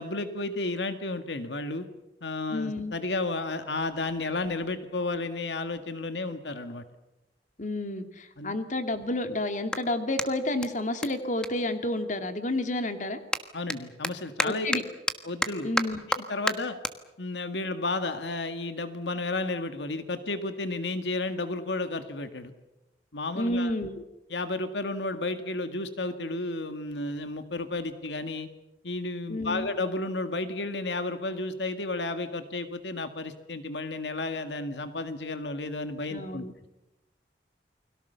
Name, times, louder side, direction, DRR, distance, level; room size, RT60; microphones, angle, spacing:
voice 1, 0.0-1.9 2.2-6.8 8.4-8.6 13.5-14.7 15.2-15.8 16.1-16.8 17.2-22.5 23.1-23.7 24.3-28.5 28.8-36.5, left 2 dB, 80° left, 9 dB, 1.8 m, -32 dB
voice 2, 2.5-2.9 7.6-13.2 14.4-14.8 15.6-16.0 23.4-23.9 29.3-29.7 36.1-36.5, left 1 dB, 45° left, 8 dB, 2.3 m, -30 dB
Clapping, 8.7-12.4 12.7-19.3, left 1 dB, 5° left, 1.4 m, -35 dB
29.5 x 22.0 x 6.9 m, 0.96 s
head